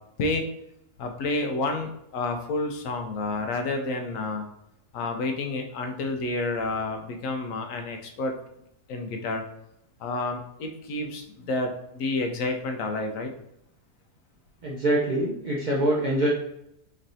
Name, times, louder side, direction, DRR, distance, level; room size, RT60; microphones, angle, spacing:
voice 1, 1.0-4.4 4.9-8.3 8.9-9.4 10.0-13.3, left 2 dB, 70° left, 4 dB, 0.9 m, -29 dB
voice 2, 14.6-16.3, right 1 dB, 85° right, -4 dB, 0.4 m, -24 dB
4.3 x 3.2 x 2.6 m, 0.79 s
omnidirectional pair, 1.6 m